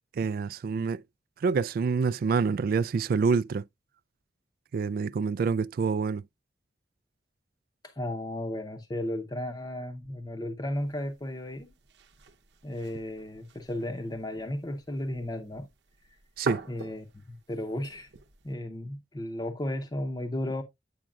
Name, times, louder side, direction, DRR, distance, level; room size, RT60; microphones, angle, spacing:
voice 1, 0.2-1.0 1.4-3.6 4.7-6.2 16.4-16.6, right 5 dB, 55° right, 0.3 m, -27 dB
voice 2, 7.8-11.7 12.6-15.7 16.7-18.1 18.4-20.6, left 1 dB, 25° left, 0.7 m, -34 dB
sound 1, 10.7-18.5, right 3 dB, 70° right, 0.8 m, -45 dB
8.7 x 6.2 x 2.4 m
head